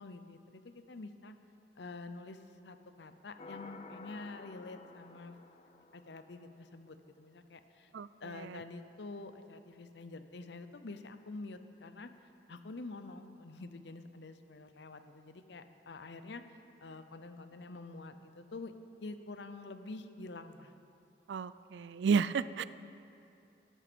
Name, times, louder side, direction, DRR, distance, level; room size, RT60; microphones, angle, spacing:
voice 1, 0.0-1.3 1.8-5.4 5.9-7.9 8.2-12.1 12.5-18.7 19.0-20.7, left 3 dB, 70° left, 9 dB, 0.7 m, -47 dB
sound 1, 3.4-6.8, left 3 dB, 35° left, 0.6 m, -52 dB
voice 2, 21.3-22.6, right 5 dB, 75° right, 16 dB, 0.4 m, -31 dB
13.0 x 9.1 x 6.1 m, 2.7 s
head